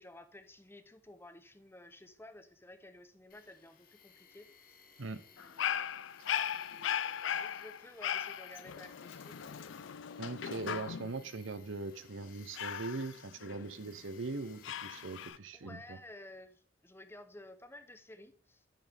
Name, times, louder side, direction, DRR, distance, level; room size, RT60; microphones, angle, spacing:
voice 1, 0.0-4.8 5.3-5.9 6.5-9.8 15.5-18.6, left 1 dB, 10° left, 9 dB, 0.8 m, -54 dB
Tools, 3.3-15.3, left 6 dB, 50° left, 1.1 m, -62 dB
Dog, 5.4-11.2 12.5-14.0 14.6-15.4, left 9 dB, 70° left, 0.4 m, -38 dB
voice 2, 10.2-16.0, right 3 dB, 90° right, 13 dB, 0.8 m, -41 dB
10.5 x 6.3 x 3.5 m, 0.43 s
head